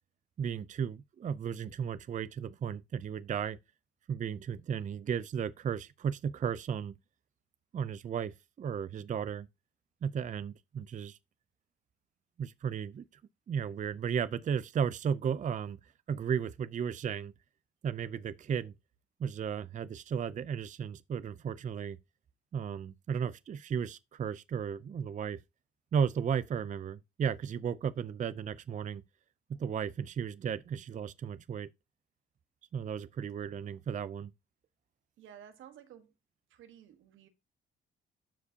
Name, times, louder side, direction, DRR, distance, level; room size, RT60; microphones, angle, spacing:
voice 1, 0.4-3.6 4.1-6.9 7.7-9.5 10.0-11.2 12.4-13.0 13.5-17.3 17.8-18.7 19.2-22.0 22.5-25.4 25.9-29.0 29.6-31.7 32.7-34.3, right 7 dB, 40° right, 0.5 m, -34 dB
voice 2, 35.2-36.1 36.5-37.3, right 10 dB, 80° right, 1.3 m, -54 dB
13.0 x 4.9 x 2.8 m
cardioid pair, 90°, 20 cm